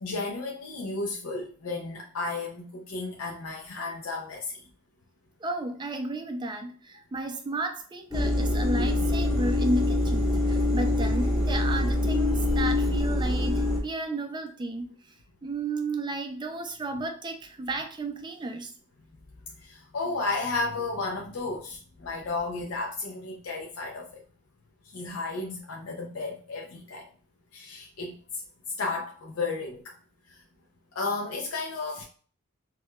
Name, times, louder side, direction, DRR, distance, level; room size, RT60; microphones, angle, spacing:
voice 1, 0.0-4.4 19.6-24.2 24.9-27.0 27.5-28.1 28.8-30.0 30.3-30.4 30.9-32.0, left 3 dB, 65° left, 0.5 m, -33 dB
voice 2, 5.4-14.9 15.4-18.7, right 2 dB, 20° right, 0.4 m, -33 dB
sound 1, 8.1-13.8, left 1 dB, ahead, 0.8 m, -25 dB
4.5 x 2.2 x 2.2 m
head